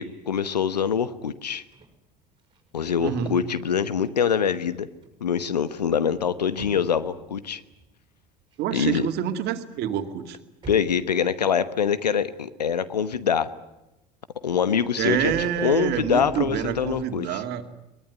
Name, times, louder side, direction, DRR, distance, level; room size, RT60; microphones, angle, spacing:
voice 1, 0.0-1.6 2.7-4.9 5.2-7.6 8.7-9.1 10.7-13.5 14.4-15.3 15.6-17.4, left 7 dB, 80° left, 14 dB, 1.1 m, -24 dB
sound 1, 1.4-4.1 4.4-9.6 9.9-11.9 12.3-12.4 14.6-17.1, right 4 dB, 25° right, 5.4 m, -48 dB
voice 2, 3.0-3.3 8.6-10.4 15.0-17.6, right 9 dB, 55° right, 7 dB, 2.4 m, -27 dB
23.0 x 20.5 x 9.5 m, 0.95 s
figure-of-eight pair, 65°, 21 cm